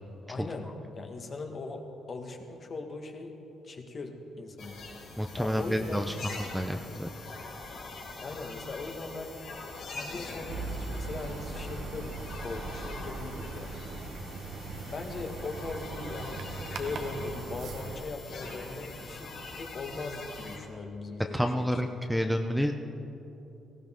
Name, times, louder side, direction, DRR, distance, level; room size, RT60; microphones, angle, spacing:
voice 1, 0.3-3.3 3.6-4.8 5.4-6.1 8.2-9.4 9.9-12.2 12.4-13.7 14.8-21.7, left 3 dB, 45° left, 3 dB, 1.6 m, -39 dB
sound 1, 4.6-20.6, left 3 dB, 85° left, 3.9 m, -44 dB
voice 2, 5.2-7.1 21.3-22.7, equal, ahead, 5 dB, 0.7 m, -29 dB
sound 2, 10.5-18.0, right 3 dB, 70° right, 1.1 m, -39 dB
18.0 x 15.5 x 3.8 m, 2.9 s
cardioid pair, 90°, 0 cm